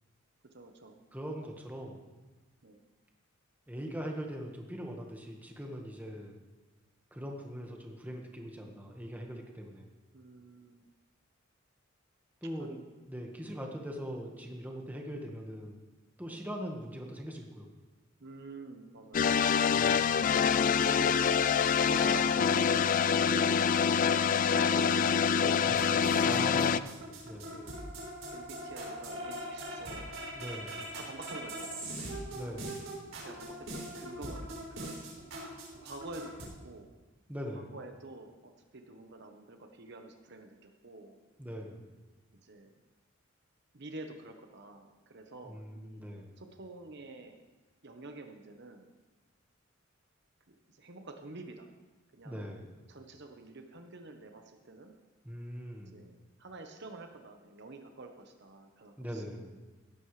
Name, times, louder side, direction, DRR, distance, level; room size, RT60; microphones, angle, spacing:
voice 1, 0.5-1.0 2.6-2.8 10.1-10.8 12.6-12.9 13.4-13.5 16.3-16.4 18.2-19.4 20.8-21.3 21.8-23.7 24.3-26.8 27.5-27.7 28.3-30.1 30.3-30.4 30.9-32.0 33.0-34.4 34.7-35.1 35.8-36.9 37.5-41.2 42.4-42.7 43.7-46.1 46.4-47.4 47.8-48.9 50.5-51.7 52.1-52.5 52.9-55.0 55.9-59.6, right 2 dB, 60° right, 5 dB, 1.1 m, -47 dB
voice 2, 1.1-2.1 3.7-6.4 7.1-9.9 12.4-12.7 13.1-15.8 16.2-17.7 19.7-20.1 25.6-25.8 26.2-27.5 30.3-30.8 32.3-32.8 37.3-37.7 41.4-41.9 45.4-46.4 52.2-52.7 55.2-56.1 59.0-59.5, equal, 10° right, 1 dB, 1.5 m, -41 dB
sound 1, 19.1-26.8, left 7 dB, 40° left, 0.3 m, -26 dB
sound 2, 25.6-36.5, right 1 dB, 85° right, 4.2 m, -42 dB
16.5 x 12.5 x 3.3 m, 1.2 s
head